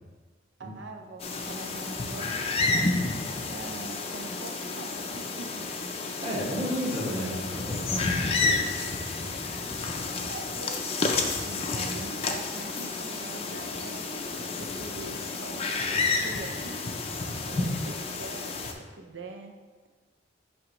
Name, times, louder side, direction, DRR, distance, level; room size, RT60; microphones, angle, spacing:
voice 1, 0.6-5.7 9.6-19.5, right 3 dB, 70° right, 4 dB, 0.6 m, -44 dB
sound 1, 1.2-18.7, left 3 dB, 30° left, 0.4 m, -30 dB
voice 2, 6.2-7.3 7.7-8.5 9.2-9.6 10.1-10.2, equal, 30° right, -6 dB, 1.4 m, -33 dB
9.8 x 3.3 x 3.0 m, 1.4 s
head